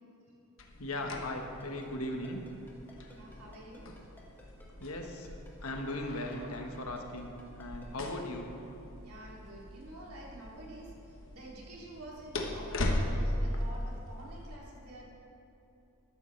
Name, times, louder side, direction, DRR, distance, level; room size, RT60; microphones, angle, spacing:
sound 1, 0.6-14.5, left 1 dB, 60° left, 1.1 m, -39 dB
voice 1, 0.8-2.4 4.8-5.3 5.6-8.5, left 1 dB, 75° left, 3 dB, 1.3 m, -38 dB
Ringtone, 1.6-8.3, left 1 dB, 10° left, 1.6 m, -56 dB
voice 2, 3.1-3.9 9.0-15.1, right 1 dB, 85° right, -4 dB, 2.8 m, -49 dB
14.0 x 12.0 x 3.3 m, 2.9 s
head